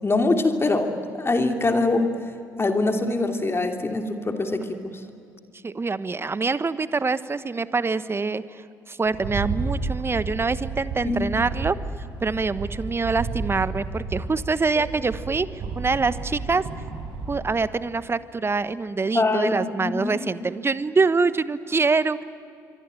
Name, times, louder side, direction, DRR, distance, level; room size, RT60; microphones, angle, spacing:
voice 1, 0.0-0.9 1.2-2.1 2.6-4.9 11.0-11.2 19.1-19.6 19.8-20.3, left 2 dB, 25° left, 5 dB, 3.0 m, -23 dB
voice 2, 5.6-11.8 12.2-16.6 17.3-22.2, right 4 dB, 25° right, 14 dB, 1.2 m, -25 dB
Rattle, 9.1-17.5, right 4 dB, 60° right, 4.9 m, -32 dB
26.0 x 24.5 x 9.1 m, 2.6 s
hypercardioid pair, 50°, 10 cm